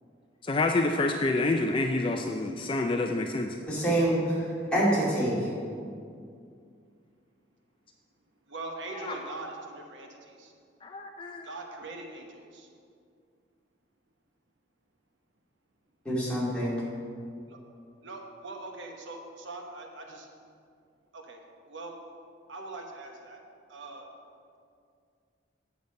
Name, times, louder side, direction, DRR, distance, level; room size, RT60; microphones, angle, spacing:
voice 1, 0.4-3.6 8.9-9.2 10.8-11.5, left 2 dB, 25° left, 3 dB, 0.4 m, -28 dB
voice 2, 3.7-5.5 16.0-16.8, right 1 dB, 5° left, -8 dB, 2.4 m, -26 dB
voice 3, 8.5-10.5 11.4-12.7 18.0-20.3 21.1-21.4 21.7-21.9 22.5-23.4 23.7-24.0, right 2 dB, 75° right, 2 dB, 1.1 m, -41 dB
9.0 x 6.7 x 5.2 m, 2.3 s
head